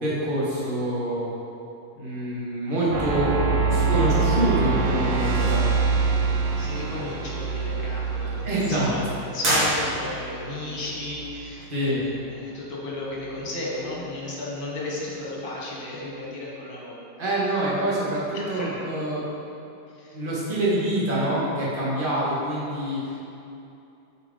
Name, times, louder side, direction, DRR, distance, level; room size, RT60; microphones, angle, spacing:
voice 1, 0.0-1.3 1.9-3.3 3.7-5.7 8.4-8.9 11.7-12.0 17.2-19.2 20.1-23.1, right 1 dB, 30° right, -8 dB, 1.7 m, -26 dB
sound 1, 2.9-11.4, right 4 dB, 85° right, 1.3 m, -25 dB
voice 2, 3.9-4.3 6.6-17.1 18.3-18.8 19.9-20.2, left 2 dB, 55° left, -4 dB, 1.7 m, -34 dB
sound 2, 9.4-10.4, right 1 dB, 45° right, 2.1 m, -25 dB
7.6 x 5.1 x 3.8 m, 2.7 s
omnidirectional pair, 2.0 m